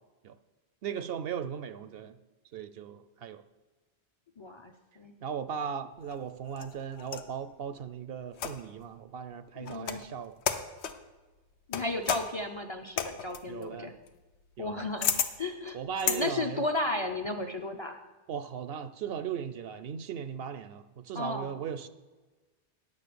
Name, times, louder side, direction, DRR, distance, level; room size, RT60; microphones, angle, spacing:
voice 1, 0.8-2.2 2.5-3.4 5.2-10.4 13.5-13.9 14.6-14.9 15.7-16.6 18.3-21.9, right 8 dB, 65° right, 12 dB, 0.7 m, -37 dB
voice 2, 4.4-5.1 9.6-10.1 11.7-13.9 14.6-15.8 16.1-18.0 21.1-21.5, left 2 dB, 35° left, 6 dB, 0.5 m, -34 dB
sound 1, 6.0-7.4 8.3-8.8 9.6-10.1 10.4-11.0 11.7-16.2, left 8 dB, 85° left, 1.0 m, -33 dB
9.7 x 6.5 x 6.8 m, 1.2 s
omnidirectional pair, 1.1 m